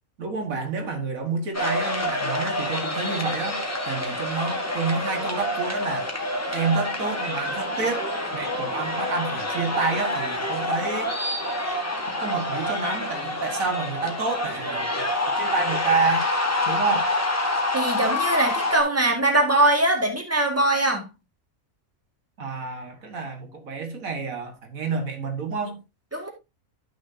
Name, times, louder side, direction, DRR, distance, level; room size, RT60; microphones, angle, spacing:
voice 1, 0.2-6.1 6.5-11.1 12.2-15.1 15.4-16.3 16.7-17.1 22.4-25.8, right 4 dB, 75° right, 2.1 m, -29 dB
sound 1, 1.5-18.8, left 1 dB, 10° left, 1.5 m, -27 dB
voice 2, 17.7-21.1 26.1-26.3, right 1 dB, 10° right, 1.9 m, -21 dB
12.0 x 6.2 x 2.7 m
omnidirectional pair, 1.5 m